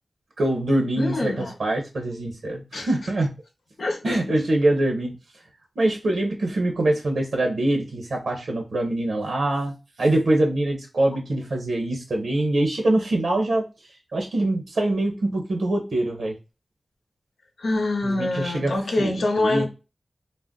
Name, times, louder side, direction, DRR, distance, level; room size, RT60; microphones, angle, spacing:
voice 1, 0.4-3.3 4.0-5.1 5.8-13.6 14.1-16.3 18.0-19.7, right 1 dB, 85° right, 0.7 m, -24 dB
voice 2, 1.0-1.5 2.7-2.9 3.8-4.4 17.6-19.7, left 2 dB, 85° left, 0.7 m, -25 dB
2.4 x 2.1 x 3.5 m
wide cardioid pair, 105°, 0 cm